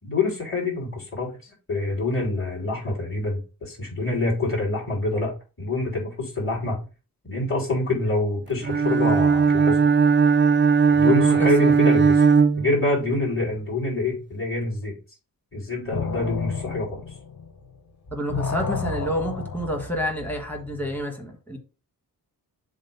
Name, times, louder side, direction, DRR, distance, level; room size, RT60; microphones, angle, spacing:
voice 1, 0.0-6.8 7.2-9.8 10.9-12.3 12.6-15.0 15.5-17.0, left 2 dB, 35° left, 3.8 m, -26 dB
Bowed string instrument, 8.6-13.2, right 5 dB, 30° right, 0.4 m, -18 dB
voice 2, 11.1-11.5 18.1-21.6, equal, 5° left, 1.5 m, -29 dB
sound 1, 15.9-17.8 18.1-21.0, left 5 dB, 50° left, 0.9 m, -32 dB
7.3 x 2.6 x 5.6 m
wide cardioid pair, 165°, 39 cm